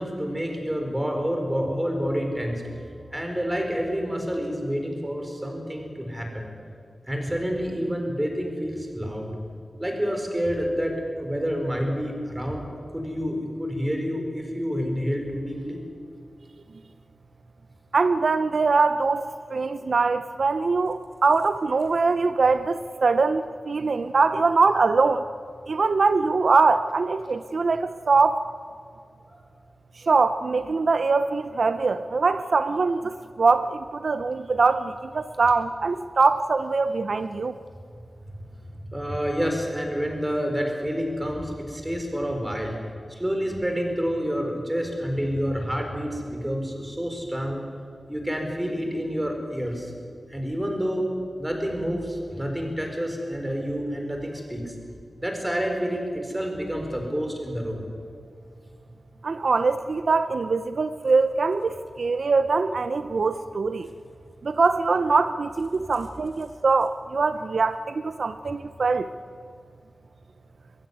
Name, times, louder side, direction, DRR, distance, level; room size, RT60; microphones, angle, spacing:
voice 1, 0.0-2.6 3.1-6.5 7.1-9.3 9.8-12.7 12.9-15.8 29.3-29.4 38.8-42.7 43.1-47.6 48.1-49.9 50.3-51.1 51.4-54.8 55.2-57.8, equal, 10° right, 3 dB, 4.6 m, -28 dB
voice 2, 17.9-25.3 25.7-28.4 30.1-37.5 59.2-63.9 64.4-69.1, right 4 dB, 65° right, 11 dB, 0.6 m, -23 dB
22.0 x 15.5 x 9.5 m, 2.2 s
wide cardioid pair, 95°, 0 cm